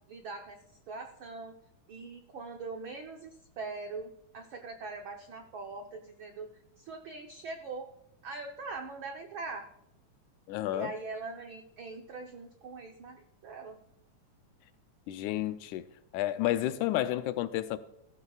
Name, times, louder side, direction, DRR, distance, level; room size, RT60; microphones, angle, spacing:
voice 1, 0.1-0.6 0.9-1.5 1.9-6.5 6.8-7.9 8.2-9.7 10.7-13.8, right 3 dB, 85° right, 1.1 m, -42 dB
voice 2, 10.5-10.9 15.1-15.8 16.1-17.8, left 14 dB, 80° left, 2.0 m, -31 dB
15.5 x 13.5 x 2.4 m
omnidirectional pair, 3.6 m